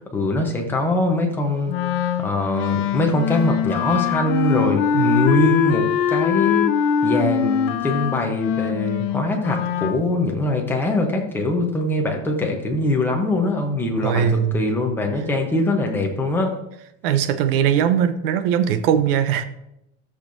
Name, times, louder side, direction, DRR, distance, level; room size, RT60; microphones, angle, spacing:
voice 1, 0.1-1.7 2.2-6.7 7.0-16.5, left 2 dB, 5° left, 0.9 m, -22 dB
Wind instrument woodwind instrument, 1.7-10.0, left 8 dB, 50° left, 0.7 m, -22 dB
voice 2, 4.9-5.3 14.0-14.6 17.0-19.5, right 8 dB, 50° right, 0.8 m, -20 dB
13.5 x 6.7 x 2.7 m
supercardioid pair, 165°, 37 cm